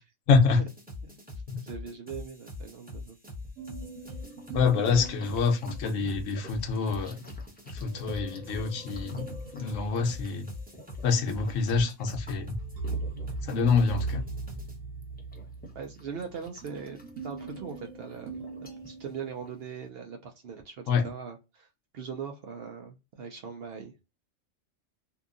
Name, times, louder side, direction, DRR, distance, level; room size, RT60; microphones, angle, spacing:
voice 1, 0.3-0.6 1.5-1.6 4.5-7.2 7.7-10.5 11.0-12.6 13.4-14.3 20.9-21.1, left 4 dB, 75° left, 0.9 m, -26 dB
sound 1, 0.7-14.8, left 2 dB, 10° right, 0.8 m, -42 dB
voice 2, 1.6-3.2 15.7-21.7 21.9-24.0, right 6 dB, 65° right, 0.6 m, -41 dB
sound 2, 3.6-6.2 7.8-10.8 12.2-19.6, right 3 dB, 85° right, 1.0 m, -40 dB
sound 3, 4.1-19.9, left 1 dB, 10° left, 0.5 m, -52 dB
2.7 x 2.3 x 2.4 m
omnidirectional pair, 1.4 m